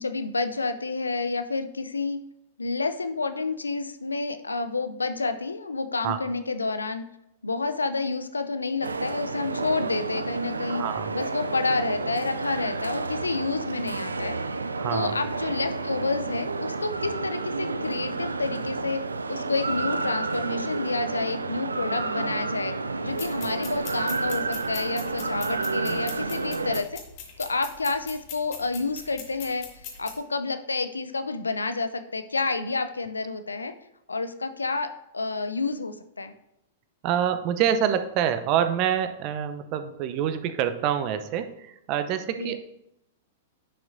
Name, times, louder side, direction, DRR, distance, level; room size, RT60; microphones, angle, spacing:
voice 1, 0.0-2.2 2.6-7.0 7.4-10.8 11.1-14.3 14.9-19.0 19.3-22.7 23.0-27.0 27.4-29.6 30.0-33.7 34.1-36.3 42.4-42.6, left 3 dB, 85° left, 9 dB, 0.6 m, -29 dB
sound 1, 8.8-26.8, right 3 dB, 85° right, 0.4 m, -30 dB
voice 2, 10.7-11.1 14.8-15.1 37.0-42.7, right 9 dB, 45° right, 10 dB, 0.7 m, -26 dB
sound 2, 23.1-30.2, left 7 dB, 45° left, 1.9 m, -42 dB
10.0 x 5.7 x 2.7 m, 0.84 s
figure-of-eight pair, 100°, 0 cm